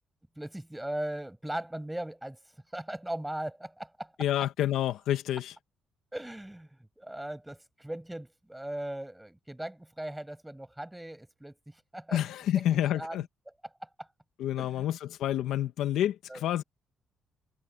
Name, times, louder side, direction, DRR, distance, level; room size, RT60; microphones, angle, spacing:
voice 1, 0.4-4.1 6.1-13.2 13.8-14.1 14.6-14.9 16.3-16.4, right 1 dB, 5° right, 6.1 m, -39 dB
voice 2, 4.2-5.5 12.1-13.2 14.4-16.6, left 12 dB, 85° left, 1.5 m, -29 dB
cardioid pair, 90°, 0 cm